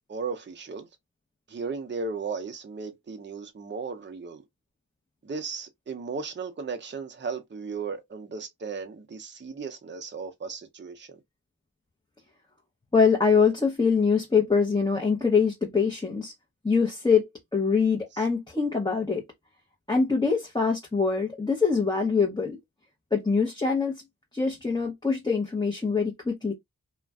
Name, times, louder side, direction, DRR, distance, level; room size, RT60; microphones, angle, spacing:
voice 1, 0.1-0.9 1.5-4.4 5.2-11.2 18.1-18.3, right 4 dB, 30° right, 0.6 m, -36 dB
voice 2, 12.9-16.3 16.6-17.2 17.5-19.2 19.9-22.6 23.1-24.0 24.3-26.5, left 5 dB, 15° left, 0.8 m, -24 dB
2.4 x 2.1 x 3.4 m
wide cardioid pair, 45°, 35 cm